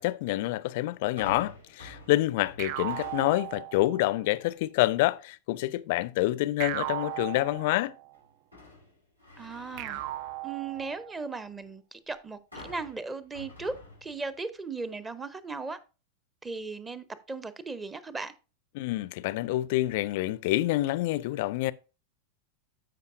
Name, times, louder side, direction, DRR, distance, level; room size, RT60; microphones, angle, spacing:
voice 1, 0.0-8.0 18.7-21.7, left 17 dB, 50° left, 0.4 m, -27 dB
sound 1, 1.2-3.7 4.2-4.6 7.0-7.7 8.1-11.0 12.5-14.5 14.8-14.9, left 2 dB, 90° right, 3.1 m, -49 dB
sound 2, 2.6-4.2 6.6-8.2 9.8-11.3, right 15 dB, 45° right, 0.3 m, -37 dB
voice 2, 9.4-10.0 10.4-13.7 14.0-15.8 16.4-18.3, right 4 dB, 15° right, 0.7 m, -37 dB
13.5 x 5.3 x 2.5 m
figure-of-eight pair, 90°, 0 cm